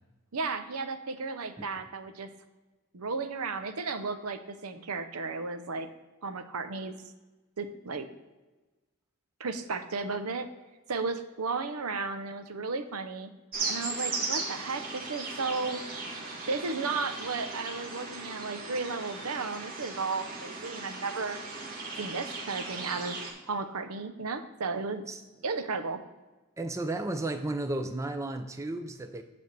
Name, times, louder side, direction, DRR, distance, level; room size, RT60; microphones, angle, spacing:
voice 1, 0.3-2.3 2.9-5.9 6.2-7.0 7.6-8.1 9.4-10.5 10.9-13.3 13.7-15.8 16.5-21.4 22.0-23.2 23.5-25.0 25.4-26.0, right 4 dB, 85° right, 9 dB, 0.8 m, -34 dB
sound 1, 13.5-23.3, right 3 dB, 40° right, 1.6 m, -37 dB
voice 2, 26.6-29.2, right 2 dB, 15° right, 7 dB, 0.4 m, -33 dB
9.2 x 3.5 x 6.6 m, 1.2 s
head